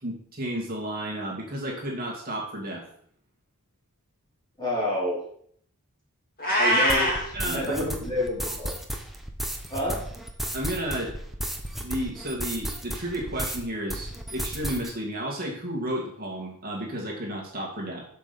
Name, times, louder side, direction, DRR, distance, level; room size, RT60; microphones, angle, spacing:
voice 1, 0.0-2.9 7.3-7.9 8.4-8.5 10.5-11.1 11.8-18.0, right 1 dB, 40° right, -1 dB, 2.3 m, -32 dB
voice 2, 4.6-5.2 6.6-8.8 9.7-10.0, left 1 dB, 20° left, -5 dB, 4.3 m, -29 dB
Meow, 6.4-7.2, equal, 40° left, 3.5 m, -22 dB
sound 1, 6.9-13.6 13.9-14.9, right 1 dB, ahead, 1.1 m, -34 dB
8.2 x 6.0 x 7.0 m, 0.64 s
head